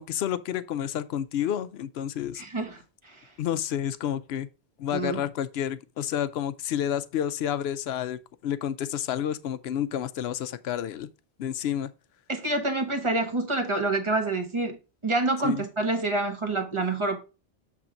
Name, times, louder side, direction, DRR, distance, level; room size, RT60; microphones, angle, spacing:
voice 1, 0.0-2.4 3.4-4.5 4.8-11.1 11.4-11.9 15.4-15.6, left 10 dB, 70° left, 0.8 m, -30 dB
voice 2, 2.4-2.8 3.0-3.2 4.9-5.2 12.3-14.8 15.0-17.2, right 2 dB, 25° right, 1.2 m, -27 dB
7.3 x 3.4 x 5.0 m
omnidirectional pair, 1.1 m